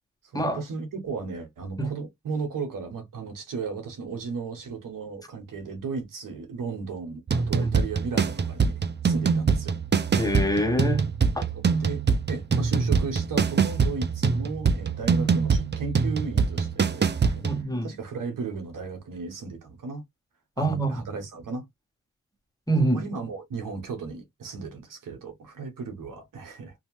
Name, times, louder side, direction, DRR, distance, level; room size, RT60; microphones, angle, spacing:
voice 1, 0.3-9.8 11.5-17.5 17.8-20.0 20.6-21.6 22.8-26.7, right 4 dB, 90° right, 1.1 m, -35 dB
sound 1, 7.3-17.6, right 5 dB, 35° right, 0.5 m, -24 dB
voice 2, 10.1-11.4 17.4-17.9 20.6-21.0 22.7-23.0, right 1 dB, 10° left, 1.1 m, -25 dB
2.7 x 2.3 x 3.0 m
cardioid pair, 45°, 31 cm